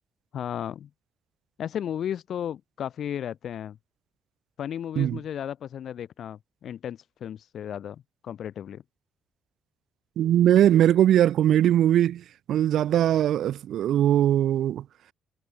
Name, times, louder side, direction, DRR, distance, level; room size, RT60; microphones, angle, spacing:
voice 1, 0.3-0.9 1.6-3.8 4.6-8.8, left 9 dB, 65° left, 1.3 m, -34 dB
voice 2, 10.2-14.8, right 11 dB, 75° right, 0.4 m, -21 dB
cardioid pair, 90°, 0 cm